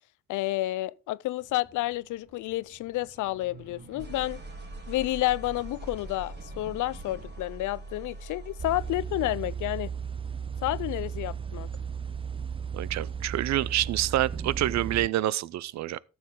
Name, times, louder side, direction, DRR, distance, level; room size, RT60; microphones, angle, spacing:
voice 1, 0.3-4.4 4.9-9.9 10.6-11.7, left 16 dB, 80° left, 0.5 m, -30 dB
sound 1, 1.4-9.2, right 2 dB, 35° right, 3.0 m, -44 dB
sound 2, 8.6-15.1, right 7 dB, 20° right, 0.5 m, -35 dB
voice 2, 12.7-16.0, right 14 dB, 65° right, 0.5 m, -27 dB
12.5 x 7.1 x 3.7 m
cardioid pair, 90°, 30 cm